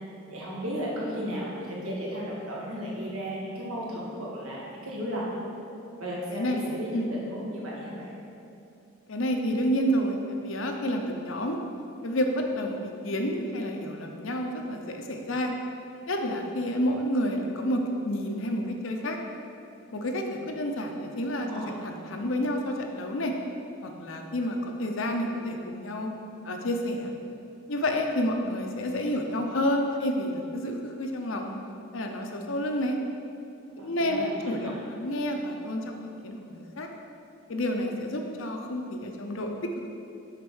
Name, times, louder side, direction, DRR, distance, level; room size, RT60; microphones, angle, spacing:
voice 1, 0.3-5.5 6.0-8.1 21.4-21.7 33.8-34.7, equal, 85° right, -5 dB, 1.8 m, -34 dB
voice 2, 6.3-7.1 9.1-11.6 12.0-15.5 16.1-19.2 19.9-23.3 23.8-26.1 26.4-27.1 27.7-31.5 31.9-33.0 33.8-35.9 36.2-36.9 37.5-39.5, equal, 70° left, 3 dB, 0.7 m, -29 dB
6.7 x 4.3 x 6.3 m, 2.7 s
head